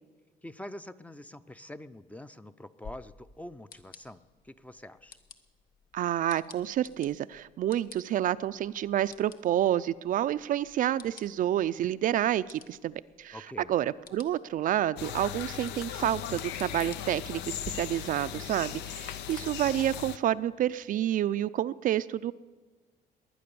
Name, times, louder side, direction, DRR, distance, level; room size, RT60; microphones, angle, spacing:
voice 1, 0.4-5.2 13.3-13.7, left 1 dB, 10° left, 12 dB, 0.5 m, -45 dB
sound 1, 2.8-17.7, left 6 dB, 60° left, 1.1 m, -54 dB
voice 2, 5.9-13.4 13.7-22.3, right 12 dB, 55° right, 13 dB, 0.4 m, -29 dB
sound 2, 15.0-20.2, left 11 dB, 85° left, 0.7 m, -38 dB
20.5 x 9.5 x 6.9 m, 1.3 s
cardioid pair, 110°, 17 cm